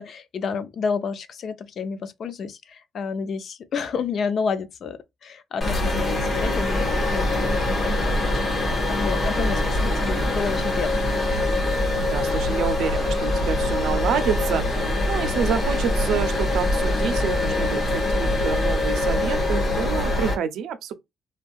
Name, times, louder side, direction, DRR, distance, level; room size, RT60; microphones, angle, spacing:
voice 1, 0.0-11.1, left 5 dB, 60° left, 0.4 m, -30 dB
sound 1, 5.6-20.3, left 1 dB, 40° left, 1.2 m, -23 dB
voice 2, 11.9-20.9, right 7 dB, 80° right, 0.5 m, -28 dB
2.6 x 2.2 x 2.3 m
cardioid pair, 90°, 0 cm